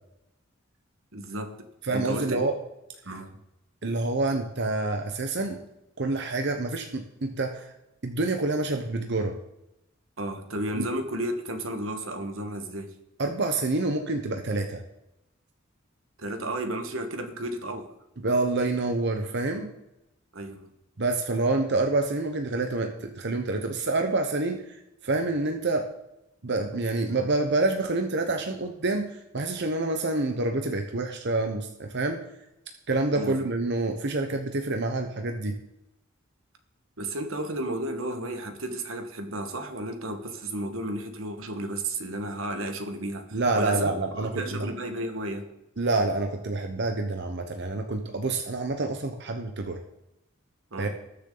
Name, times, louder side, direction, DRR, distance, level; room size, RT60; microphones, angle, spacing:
voice 1, 1.1-2.5 3.0-3.4 10.2-12.9 16.2-17.9 20.3-20.7 33.1-33.5 37.0-45.5 50.7-50.9, right 1 dB, 85° right, 6 dB, 1.6 m, -33 dB
voice 2, 1.8-2.5 3.8-5.6 6.0-7.7 8.0-9.3 10.8-10.9 13.2-14.8 18.2-19.7 21.0-25.9 26.4-32.2 32.9-35.5 43.3-44.7 45.8-49.8 50.8-50.9, right 2 dB, 55° right, 5 dB, 1.0 m, -27 dB
20.0 x 6.8 x 4.0 m, 0.89 s
head